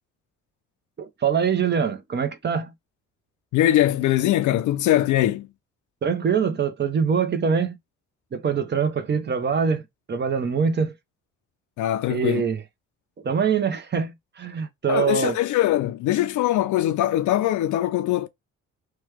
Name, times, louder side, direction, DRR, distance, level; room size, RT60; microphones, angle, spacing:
voice 1, 1.0-2.7 6.0-7.8 8.3-9.8 10.1-10.9 12.1-12.6 13.2-15.4, right 6 dB, 35° right, 0.7 m, -24 dB
voice 2, 3.5-5.5 11.8-12.5 14.9-18.3, left 13 dB, 75° left, 0.5 m, -22 dB
3.0 x 2.3 x 3.3 m
cardioid pair, 90°, 30 cm